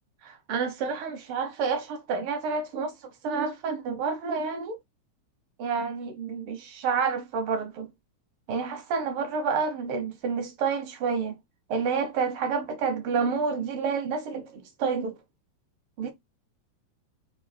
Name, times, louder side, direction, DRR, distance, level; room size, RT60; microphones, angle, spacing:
voice 1, 0.2-2.9 3.2-4.8 5.6-7.9 8.5-11.3 11.7-15.2 16.0-16.1, right 5 dB, 75° right, 1.2 m, -29 dB
4.9 x 2.6 x 4.1 m
omnidirectional pair, 3.3 m